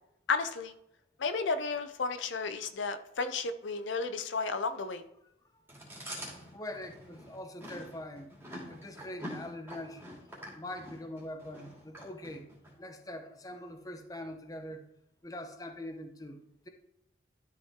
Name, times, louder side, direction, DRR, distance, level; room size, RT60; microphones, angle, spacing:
voice 1, 0.3-0.7 1.2-5.0, left 4 dB, 80° left, 10 dB, 0.6 m, -33 dB
Chewing mastication, 5.7-12.7, equal, 10° right, 2.6 m, -45 dB
voice 2, 6.5-8.3 8.7-10.0 10.5-12.5 12.8-14.8 15.2-16.4, left 1 dB, 20° left, 5 dB, 0.8 m, -43 dB
12.0 x 5.8 x 3.6 m, 0.80 s
head